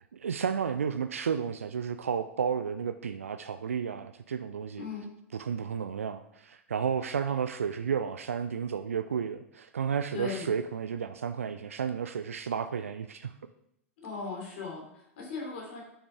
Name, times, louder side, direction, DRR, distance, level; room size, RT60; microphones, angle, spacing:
voice 1, 0.1-4.8 5.3-13.3, right 7 dB, 70° right, 10 dB, 0.4 m, -32 dB
voice 2, 10.1-10.5 14.0-15.8, left 4 dB, 50° left, -2 dB, 3.5 m, -38 dB
8.9 x 7.0 x 3.6 m, 0.78 s
figure-of-eight pair, 90°, 8 cm